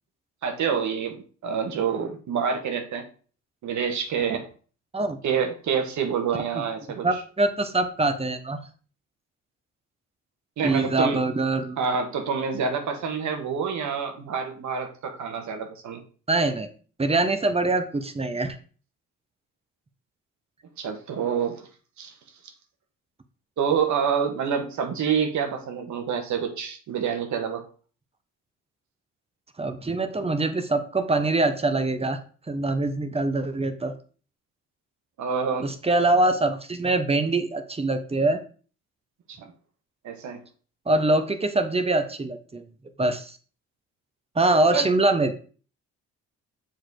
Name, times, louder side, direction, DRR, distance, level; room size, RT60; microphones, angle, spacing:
voice 1, 0.4-1.2 1.4-3.0 3.6-4.4 5.2-7.1 10.6-11.2 11.8-16.0 20.8-21.7 22.0-22.1 23.6-27.6 35.2-35.7 39.3-39.5 40.0-40.4 44.7-44.9, right 6 dB, 70° right, 5 dB, 1.7 m, -27 dB
voice 2, 7.0-8.6 10.6-11.8 16.3-16.7 17.0-18.6 29.6-32.2 32.5-33.9 35.6-38.4 40.9-42.6 43.0-43.4 44.3-45.3, right 2 dB, 20° right, 9 dB, 1.2 m, -24 dB
7.1 x 4.7 x 4.7 m, 0.40 s
cardioid pair, 90°, 30 cm